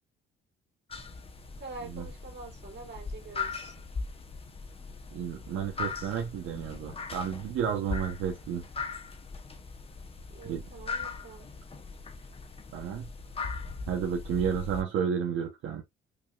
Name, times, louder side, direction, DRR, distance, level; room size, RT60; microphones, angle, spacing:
sound 1, 0.9-14.8, left 4 dB, 30° left, 0.7 m, -39 dB
voice 1, 1.6-3.7 10.3-11.5 14.9-15.0, right 3 dB, 60° right, 2.4 m, -45 dB
voice 2, 5.1-8.6 10.4-10.6 12.7-13.1 13.9-15.8, right 8 dB, 85° right, 0.9 m, -31 dB
5.3 x 2.5 x 2.3 m
cardioid pair, 90°, 20 cm